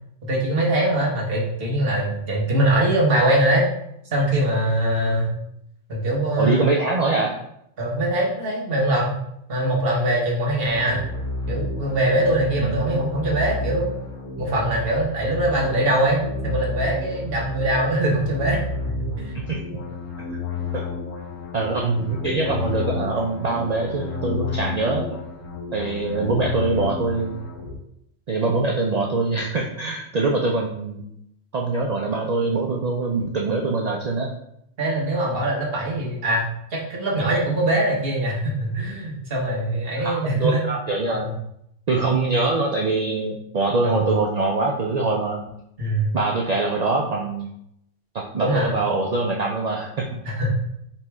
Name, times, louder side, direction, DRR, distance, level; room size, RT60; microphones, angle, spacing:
voice 1, 0.2-3.6 4.1-5.3 5.9-6.6 7.8-9.2 9.5-11.0 11.5-13.9 14.4-18.6 19.0-19.3 34.8-40.6 41.1-41.3 43.8-44.1 45.8-46.1 48.4-48.7 50.2-50.5, right 1 dB, 50° right, -3 dB, 1.2 m, -22 dB
voice 2, 6.4-7.3 12.6-12.8 19.5-19.6 20.3-20.4 20.7-20.8 21.5-25.1 25.7-27.4 28.3-31.0 31.5-34.3 40.0-41.3 41.9-45.4 46.1-47.5 48.1-50.1, right 3 dB, 80° right, 0 dB, 0.3 m, -23 dB
sound 1, 10.7-27.7, left 3 dB, 90° left, 1.2 m, -31 dB
4.3 x 3.0 x 3.4 m, 0.77 s
omnidirectional pair, 1.3 m